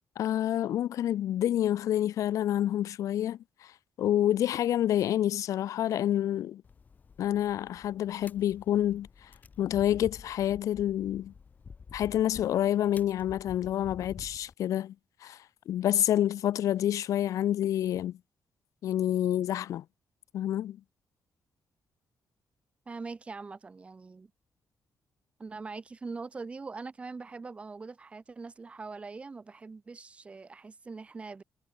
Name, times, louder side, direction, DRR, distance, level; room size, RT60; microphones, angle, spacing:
voice 1, 0.2-3.4 4.0-6.6 7.2-9.3 9.6-11.3 11.9-14.9 15.2-15.4 15.7-18.2 18.8-19.8 20.3-20.8, left 11 dB, 90° left, 1.2 m, -28 dB
sound 1, 6.6-14.5, left 5 dB, 30° left, 3.7 m, -50 dB
voice 2, 22.9-24.3 25.4-31.4, right 4 dB, 20° right, 2.0 m, -42 dB
wide cardioid pair, 180°, 5 cm